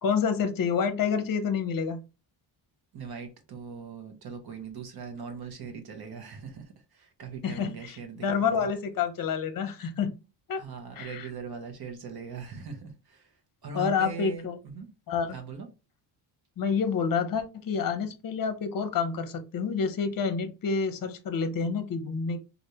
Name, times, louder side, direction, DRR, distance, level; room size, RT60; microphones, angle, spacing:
voice 1, 0.0-2.0 7.4-10.1 10.5-10.6 11.0-11.3 13.7-14.6 15.1-15.4 16.6-22.4, left 6 dB, 45° left, 0.8 m, -28 dB
voice 2, 2.9-8.7 10.6-13.4 13.6-14.9 15.3-15.7, right 5 dB, 50° right, 1.0 m, -40 dB
3.3 x 2.6 x 2.8 m
cardioid pair, 95°, 47 cm